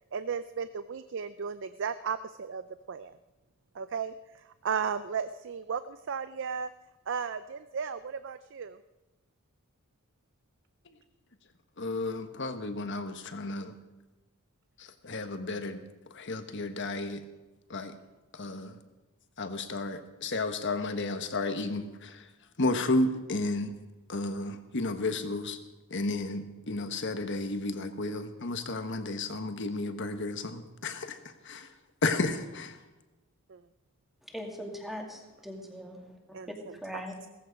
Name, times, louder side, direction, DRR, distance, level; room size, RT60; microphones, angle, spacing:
voice 1, 0.1-2.6 2.9-3.2 3.7-4.1 4.6-6.7 7.1-8.8 33.5-33.6 36.3-37.3, right 6 dB, 60° right, 12 dB, 0.5 m, -35 dB
voice 2, 11.8-13.7 14.8-15.8 16.1-17.2 17.7-17.9 18.3-18.8 19.4-22.3 22.6-23.7 24.1-25.6 25.9-31.7 32.0-32.8, left 2 dB, 55° left, 8 dB, 1.3 m, -32 dB
voice 3, 34.3-36.0 36.7-37.1, equal, ahead, 2 dB, 2.2 m, -40 dB
17.0 x 15.0 x 5.2 m, 1.1 s
head